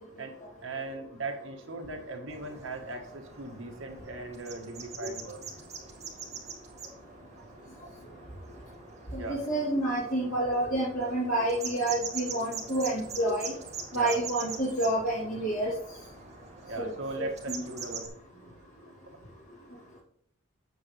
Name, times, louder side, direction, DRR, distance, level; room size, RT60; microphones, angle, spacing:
voice 1, 0.6-5.4 9.2-9.4 13.9-14.2 16.6-18.5 19.1-19.2, right 2 dB, 60° right, 3 dB, 1.4 m, -38 dB
sound 1, 2.3-18.1, right 5 dB, 30° right, 2.0 m, -43 dB
voice 2, 9.1-13.5 13.9-15.7 16.8-16.9 17.6-17.7, right 1 dB, 75° left, -8 dB, 3.1 m, -29 dB
8.8 x 7.4 x 3.3 m, 0.67 s
head